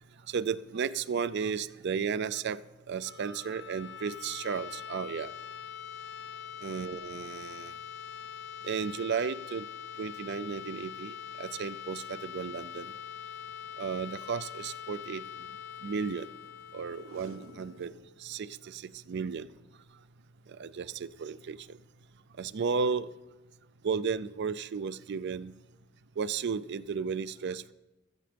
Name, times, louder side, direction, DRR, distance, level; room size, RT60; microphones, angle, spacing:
voice 1, 0.3-2.6 2.9-5.3 6.6-7.7 8.6-9.7 10.0-12.9 13.8-15.2 15.8-16.3 16.7-17.9 18.2-18.8 19.1-19.5 20.6-21.8 22.4-23.1 23.8-25.5 26.2-27.7, right 6 dB, 55° right, 14 dB, 0.4 m, -34 dB
sound 1, 2.9-18.7, left 8 dB, 60° left, 0.7 m, -44 dB
Packing tape duct tape, 17.0-18.1 18.5-18.6 18.7-18.8 19.4-19.7 20.7-21.0 21.5-21.6, right 2 dB, 85° right, 1.2 m, -52 dB
16.5 x 13.0 x 3.4 m, 1.1 s
head